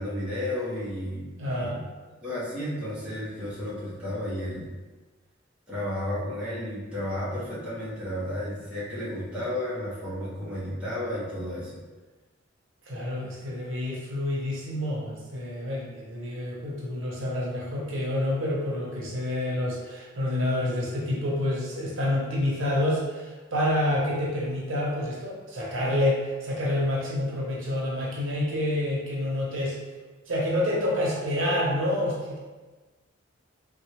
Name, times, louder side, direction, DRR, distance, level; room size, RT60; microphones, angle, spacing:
voice 1, 0.0-1.8 2.2-4.7 5.7-11.7, left 1 dB, 5° right, -11 dB, 1.0 m, -32 dB
voice 2, 1.4-1.9 12.9-29.8 30.3-32.4, left 1 dB, 85° right, -4 dB, 0.8 m, -28 dB
3.5 x 2.3 x 3.1 m, 1.3 s
head